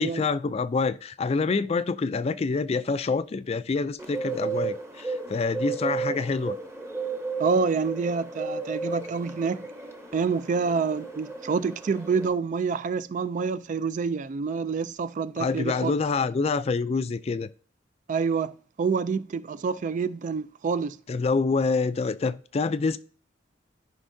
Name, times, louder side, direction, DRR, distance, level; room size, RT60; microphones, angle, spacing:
voice 1, 0.0-6.6 15.4-17.5 21.1-23.0, left 4 dB, 35° left, 0.3 m, -26 dB
Bird, 4.0-12.3, right 4 dB, 15° right, 0.9 m, -34 dB
voice 2, 7.4-9.7 10.1-15.9 18.1-21.0, right 5 dB, 45° right, 0.3 m, -27 dB
13.5 x 5.2 x 2.7 m
head